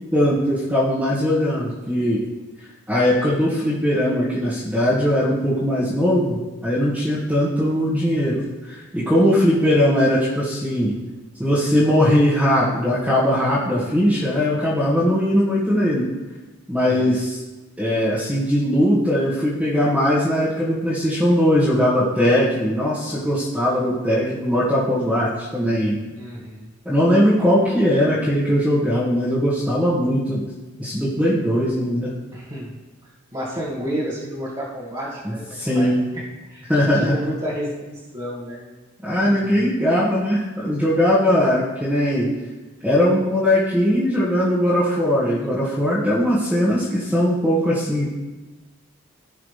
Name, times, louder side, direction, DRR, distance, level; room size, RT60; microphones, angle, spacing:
voice 1, 0.1-2.2 2.9-10.9 11.4-16.1 16.7-17.4 17.8-26.0 26.8-30.4 30.8-32.1 35.2-36.0 36.7-37.1 39.0-42.3 42.8-48.1, equal, 5° right, -11 dB, 1.7 m, -20 dB
voice 2, 16.8-17.2 26.1-26.7 32.3-32.8 33.3-36.2 36.5-38.7 39.2-39.7, equal, 20° right, -10 dB, 1.7 m, -31 dB
17.0 x 5.7 x 3.4 m, 1.2 s
head